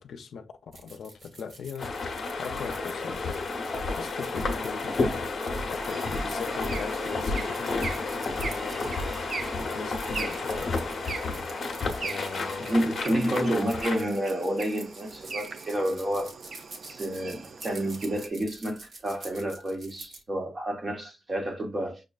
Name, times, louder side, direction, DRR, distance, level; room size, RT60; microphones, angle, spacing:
voice 1, 0.0-9.2 9.6-11.2 12.0-13.7, left 6 dB, 75° left, 0.5 m, -41 dB
sound 1, 0.7-20.2, right 3 dB, 65° right, 1.1 m, -48 dB
sound 2, 1.8-14.0, left 3 dB, 50° left, 0.8 m, -31 dB
sound 3, 5.9-18.3, right 4 dB, 50° right, 0.4 m, -41 dB
voice 2, 12.6-16.4 16.8-22.0, right 1 dB, 30° right, 1.0 m, -29 dB
6.3 x 2.3 x 2.4 m
wide cardioid pair, 180°, 0 cm